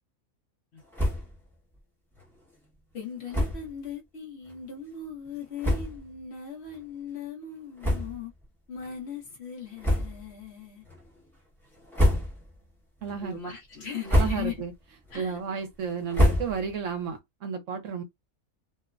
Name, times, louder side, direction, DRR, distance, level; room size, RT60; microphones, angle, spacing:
sound 1, 0.9-1.4 1.7-1.8 2.1-2.3 3.3-3.7 4.5-4.6 5.2-5.3 5.6-6.1 6.7-6.8 7.8-8.4 8.8-8.9 9.8-10.4 10.8-11.3 11.7-12.6 13.0-13.4 13.8-14.7 15.1-16.9, equal, ahead, 0.8 m, -27 dB
voice 1, 2.9-8.3 8.7-10.9 13.2-14.6 15.1-15.4, left 6 dB, 50° left, 1.1 m, -39 dB
voice 2, 13.0-13.4 14.1-14.7 15.1-18.0, right 6 dB, 65° right, 1.0 m, -32 dB
3.0 x 2.1 x 2.4 m
omnidirectional pair, 1.5 m